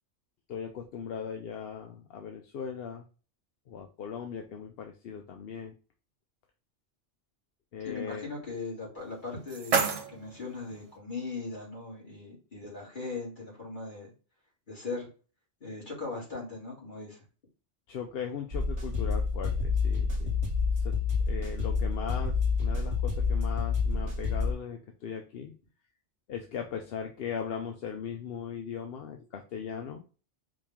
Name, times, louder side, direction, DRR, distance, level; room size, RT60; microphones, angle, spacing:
voice 1, 0.5-3.1 3.7-5.7 7.7-8.3 17.9-20.4 20.8-21.0 21.3-25.5 26.3-30.0, left 7 dB, 60° left, 4 dB, 0.8 m, -38 dB
voice 2, 7.8-14.1 14.7-15.1 15.6-17.2, left 3 dB, 40° left, -5 dB, 2.6 m, -39 dB
sound 1, 9.0-11.0, right 5 dB, 85° right, 1.3 m, -32 dB
sound 2, 18.5-24.5, left 4 dB, 60° right, 1.6 m, -28 dB
4.9 x 2.9 x 3.5 m, 0.36 s
omnidirectional pair, 1.2 m